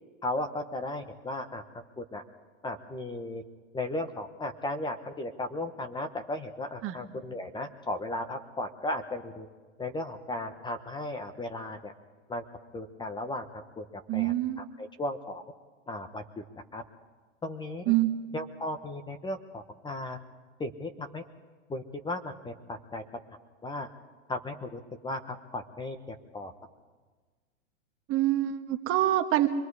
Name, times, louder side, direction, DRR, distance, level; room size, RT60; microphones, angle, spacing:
voice 1, 0.2-1.6 2.0-2.2 2.6-3.4 3.7-9.5 9.8-11.9 12.3-12.4 12.7-13.4 13.8-13.9 14.1-15.4 15.9-16.2 16.7-16.8 17.4-17.9 18.3-20.2 20.6-21.2 21.7-23.0 23.6-23.9 24.3-26.5, left 1 dB, 10° left, 7 dB, 1.1 m, -35 dB
voice 2, 14.1-14.7 17.9-18.2 28.1-29.5, right 14 dB, 35° right, 7 dB, 1.4 m, -26 dB
25.5 x 21.5 x 4.9 m, 1.4 s
hypercardioid pair, 120°, 39 cm